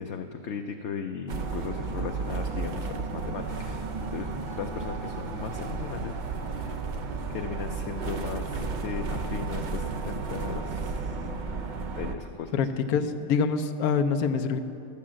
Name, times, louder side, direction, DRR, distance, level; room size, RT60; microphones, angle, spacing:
voice 1, 0.0-6.8 7.3-11.2 12.0-12.6, left 6 dB, 60° left, 4 dB, 0.8 m, -37 dB
sound 1, 1.3-12.1, right 4 dB, 45° right, 0.6 m, -33 dB
sound 2, 2.3-11.0, right 4 dB, 85° right, 1.3 m, -47 dB
voice 2, 12.5-14.6, left 5 dB, 80° left, 9 dB, 1.2 m, -25 dB
12.0 x 8.7 x 7.4 m, 2.7 s
omnidirectional pair, 1.5 m